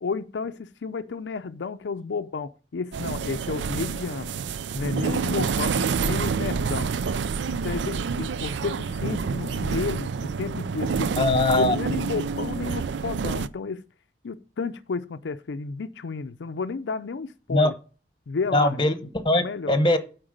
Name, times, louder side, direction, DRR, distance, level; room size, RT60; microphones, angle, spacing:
voice 1, 0.0-4.3 4.7-6.9 7.6-11.1 11.6-13.8 14.2-17.7 18.3-18.8 19.3-19.8, left 4 dB, 85° left, 0.5 m, -32 dB
sound 1, 2.9-13.5, right 5 dB, 85° right, 0.4 m, -28 dB
voice 2, 11.2-11.8 17.5-17.7 18.5-20.0, left 2 dB, 25° left, 1.0 m, -21 dB
8.8 x 4.5 x 6.4 m
head